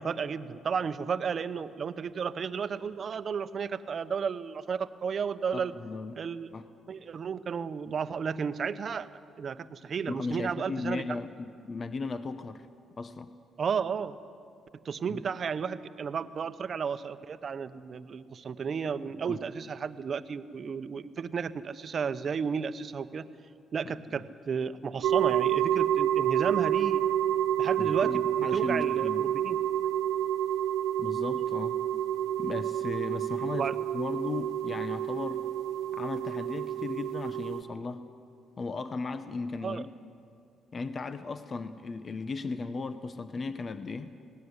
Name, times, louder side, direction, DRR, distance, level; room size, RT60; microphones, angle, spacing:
voice 1, 0.0-5.7 6.2-6.5 6.9-9.1 9.4-11.2 13.6-14.2 14.8-23.3 23.7-27.0 27.6-29.6 33.5-33.7 39.6-39.8, right 6 dB, 50° right, 12 dB, 0.9 m, -33 dB
voice 2, 5.5-6.2 6.5-6.7 10.1-12.7 13.0-13.3 15.1-15.2 19.3-19.4 24.1-24.2 27.8-29.3 31.0-31.8 32.4-33.7 33.9-35.4 35.9-38.0 38.6-39.9 40.7-44.1, left 4 dB, 40° left, 11 dB, 0.8 m, -36 dB
sound 1, 25.0-37.6, right 11 dB, 85° right, 0.7 m, -29 dB
19.5 x 18.0 x 9.7 m, 2.5 s
cardioid pair, 90°, 0 cm